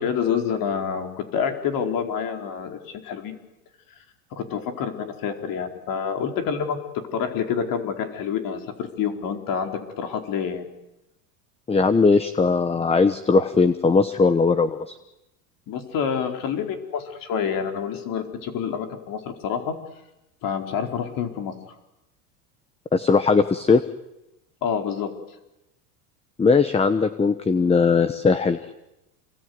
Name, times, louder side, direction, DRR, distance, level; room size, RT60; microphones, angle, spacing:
voice 1, 0.0-3.4 3.9-4.0 4.3-10.7 15.7-19.8 20.4-21.8 24.6-25.1, left 7 dB, 45° left, 4 dB, 4.5 m, -28 dB
voice 2, 11.7-15.0 22.9-23.8 26.4-28.7, left 4 dB, 15° left, 11 dB, 1.1 m, -19 dB
28.0 x 20.5 x 9.6 m, 0.93 s
supercardioid pair, 130°, 45 cm